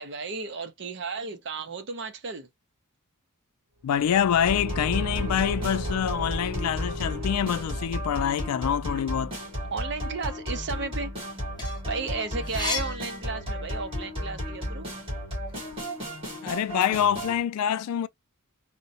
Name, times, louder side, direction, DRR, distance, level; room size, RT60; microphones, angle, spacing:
voice 1, 0.0-2.5 9.7-11.1 11.8-14.9, right 4 dB, 50° right, 0.7 m, -34 dB
voice 2, 3.8-9.4 16.4-18.1, left 9 dB, 75° left, 0.3 m, -26 dB
Car / Engine, 3.9-8.4, equal, 80° right, 0.9 m, -35 dB
sound 1, 4.5-17.4, equal, 25° right, 2.1 m, -34 dB
sound 2, 11.3-14.0 14.4-15.8, left 4 dB, 20° left, 0.9 m, -36 dB
3.7 x 2.1 x 2.7 m
head